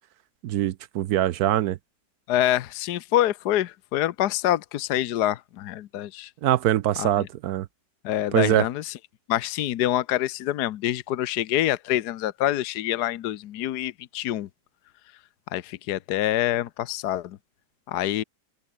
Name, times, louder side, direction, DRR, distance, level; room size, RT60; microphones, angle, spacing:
voice 1, 0.4-1.8 6.4-7.7 8.3-8.7, right 12 dB, 75° right, 1.1 m, -23 dB
voice 2, 2.3-6.3 7.0-7.3 8.0-8.9 9.3-14.5 15.5-17.3 17.9-18.2, left 13 dB, 75° left, 1.3 m, -26 dB
omnidirectional pair, 1.8 m